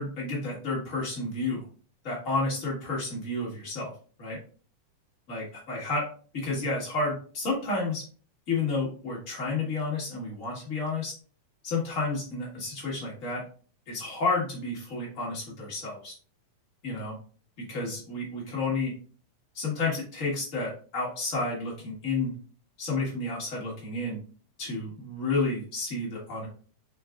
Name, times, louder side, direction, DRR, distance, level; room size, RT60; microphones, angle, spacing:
voice 1, 0.0-1.6 2.0-3.9 4.2-4.4 5.3-6.1 6.3-8.0 8.5-11.1 11.6-13.4 13.9-16.1 16.8-17.2 17.6-18.9 19.5-22.3 22.8-24.2 24.6-26.5, left 3 dB, 70° left, -4 dB, 0.7 m, -31 dB
4.6 x 4.1 x 2.3 m, 0.40 s
omnidirectional pair, 3.7 m